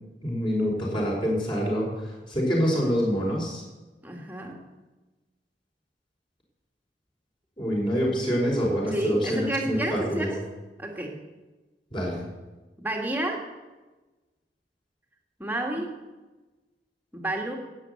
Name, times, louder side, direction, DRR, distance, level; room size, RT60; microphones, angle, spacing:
voice 1, 0.2-3.6 7.6-10.3 11.9-12.2, equal, 30° left, -3 dB, 5.0 m, -26 dB
voice 2, 4.0-4.7 8.9-10.4 10.8-11.2 12.8-13.4 15.4-16.0 17.1-17.6, right 1 dB, 10° right, 1 dB, 2.1 m, -30 dB
13.5 x 8.6 x 9.6 m, 1.2 s
head